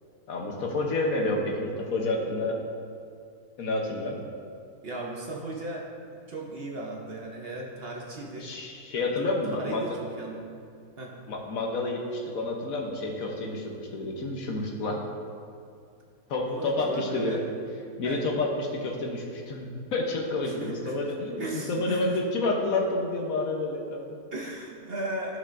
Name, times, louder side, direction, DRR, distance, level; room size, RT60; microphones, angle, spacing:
voice 1, 0.3-2.5 3.6-4.2 8.4-10.0 11.3-15.0 16.3-17.4 18.0-24.2, left 2 dB, 70° left, 0 dB, 1.3 m, -29 dB
voice 2, 4.8-5.8 6.3-8.5 9.0-9.1 9.5-10.4 11.0-11.1 16.4-17.5 18.0-18.2 20.4-21.0 21.4-22.2 24.3-25.4, right 2 dB, 50° right, -2 dB, 0.9 m, -36 dB
13.0 x 5.5 x 2.6 m, 2.4 s
omnidirectional pair, 1.6 m